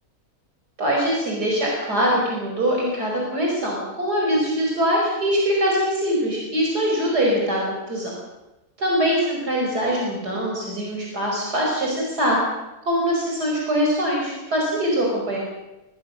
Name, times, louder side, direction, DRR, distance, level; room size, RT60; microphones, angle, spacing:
voice 1, 0.8-8.1 8.8-12.4 12.9-15.4, equal, 75° right, -2 dB, 5.6 m, -23 dB
21.0 x 20.0 x 6.5 m, 0.99 s
omnidirectional pair, 1.7 m